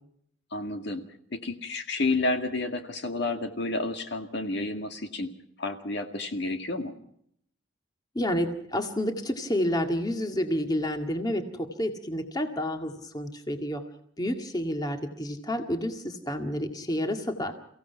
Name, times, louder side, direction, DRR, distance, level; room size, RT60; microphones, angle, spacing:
voice 1, 0.5-1.0 1.3-5.3 5.6-6.9, left 2 dB, 55° left, 6 dB, 2.0 m, -30 dB
voice 2, 8.2-13.8 14.2-17.5, equal, 20° left, 5 dB, 1.9 m, -29 dB
29.5 x 16.5 x 5.8 m, 0.69 s
head